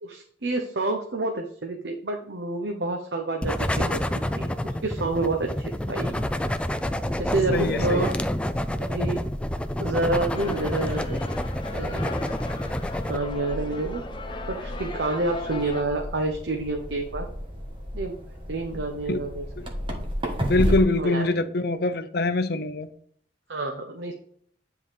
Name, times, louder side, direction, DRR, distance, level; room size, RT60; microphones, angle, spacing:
voice 1, 0.0-5.5 5.9-6.2 7.2-8.1 8.8-9.2 9.8-11.2 11.7-12.3 13.1-14.0 14.5-17.3 17.9-18.1 18.5-19.4 20.6-21.2 23.5-24.1, right 2 dB, 70° right, 3 dB, 0.9 m, -28 dB
sound 1, 3.4-13.2, left 1 dB, 5° left, 0.4 m, -28 dB
sound 2, 6.2-20.8, equal, 30° right, 1.3 m, -34 dB
voice 2, 7.5-8.1 19.1-19.2 20.5-22.9, left 2 dB, 60° left, 10 dB, 0.7 m, -24 dB
sound 3, 10.3-15.8, left 3 dB, 25° left, 0.8 m, -38 dB
9.9 x 4.0 x 5.1 m, 0.62 s
head